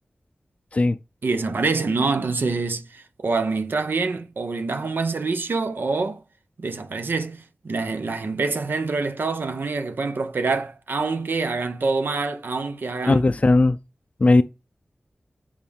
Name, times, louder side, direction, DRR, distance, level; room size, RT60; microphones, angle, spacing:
voice 1, 1.2-6.2 6.6-13.2, right 3 dB, 70° right, 0.9 m, -26 dB
voice 2, 13.0-13.8 14.2-14.4, left 2 dB, 35° left, 0.4 m, -17 dB
9.0 x 5.1 x 3.6 m
wide cardioid pair, 80°, 4 cm